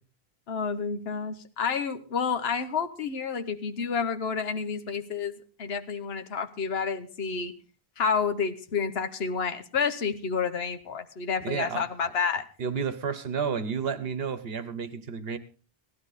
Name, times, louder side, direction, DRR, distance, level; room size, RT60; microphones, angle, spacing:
voice 1, 0.5-7.5 8.0-12.4, left 6 dB, 75° left, 9 dB, 1.2 m, -29 dB
voice 2, 11.4-12.1 12.6-15.4, right 6 dB, 70° right, 13 dB, 1.2 m, -31 dB
17.5 x 12.5 x 4.1 m, 0.38 s
omnidirectional pair, 1.1 m